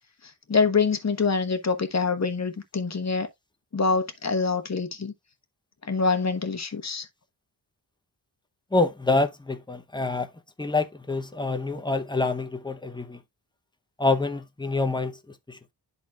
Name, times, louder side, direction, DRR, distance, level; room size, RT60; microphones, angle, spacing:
voice 1, 0.5-3.3 3.7-5.1 5.9-7.1, left 4 dB, 35° left, 1.1 m, -25 dB
voice 2, 8.7-10.3 10.6-13.2 14.0-15.7, left 3 dB, 10° left, 0.7 m, -26 dB
12.0 x 4.0 x 2.3 m
wide cardioid pair, 100°, 44 cm